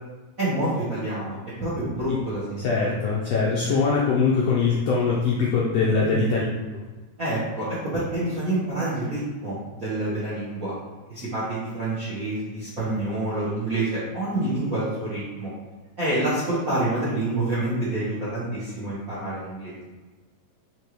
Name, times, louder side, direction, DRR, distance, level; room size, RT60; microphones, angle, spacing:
voice 1, 0.4-2.9 6.0-6.3 7.2-10.7 11.1-15.5 16.0-19.8, right 1 dB, 55° right, -10 dB, 0.9 m, -27 dB
voice 2, 2.6-6.4 6.7-6.8, left 4 dB, 80° left, -4 dB, 1.5 m, -22 dB
5.3 x 3.3 x 3.0 m, 1.3 s
omnidirectional pair, 3.5 m